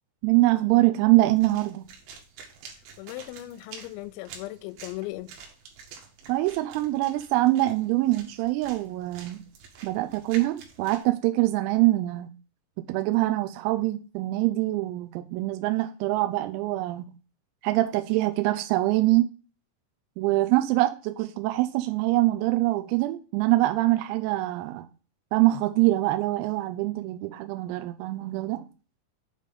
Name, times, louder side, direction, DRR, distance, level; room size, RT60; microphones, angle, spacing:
voice 1, 0.2-1.8 6.3-9.4 9.8-12.3 12.8-17.2 17.6-19.3 20.2-24.9 25.3-28.7, right 18 dB, 90° right, 3.3 m, -24 dB
sound 1, 1.2-11.0, right 6 dB, 75° right, 3.9 m, -48 dB
voice 2, 3.0-5.3, left 17 dB, 85° left, 3.3 m, -37 dB
8.6 x 3.2 x 5.2 m
omnidirectional pair, 6.0 m